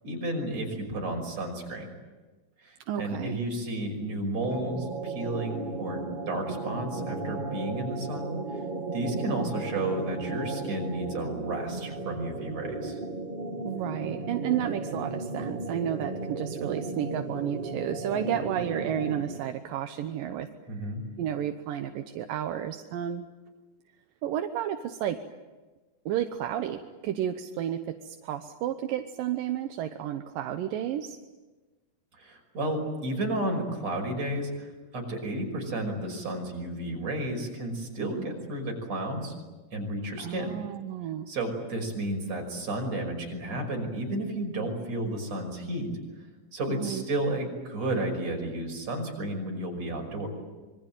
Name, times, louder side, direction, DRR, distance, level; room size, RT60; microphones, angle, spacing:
voice 1, 0.0-1.9 2.6-8.3 8.9-13.0 20.7-21.0 32.2-39.3 39.7-40.6 41.3-45.9 46.5-50.3, right 1 dB, 50° right, 2 dB, 6.9 m, -32 dB
voice 2, 2.9-3.4 9.3-9.4 13.6-20.5 21.2-23.3 24.2-25.2 26.1-31.2 38.0-38.3 40.2-41.3 46.7-47.0, right 10 dB, 85° right, 6 dB, 2.7 m, -32 dB
sound 1, 4.4-19.5, right 3 dB, 25° right, 1.1 m, -35 dB
sound 2, 4.5-8.8, right 3 dB, 10° right, 2.9 m, -56 dB
26.0 x 23.5 x 9.1 m, 1.2 s
omnidirectional pair, 3.9 m